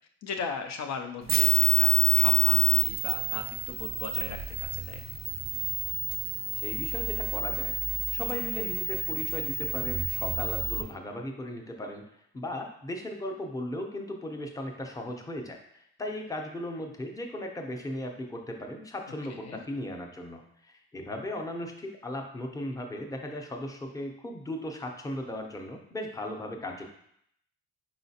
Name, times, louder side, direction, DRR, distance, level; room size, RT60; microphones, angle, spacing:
voice 1, 0.2-5.0 19.3-19.6, left 5 dB, 65° left, 5 dB, 0.5 m, -38 dB
sound 1, 1.3-10.8, right 8 dB, 30° right, 0.5 m, -27 dB
voice 2, 6.5-12.0 12.3-26.9, left 1 dB, 10° left, 2 dB, 0.6 m, -37 dB
4.2 x 3.9 x 2.8 m, 0.72 s
cardioid pair, 90°, 30 cm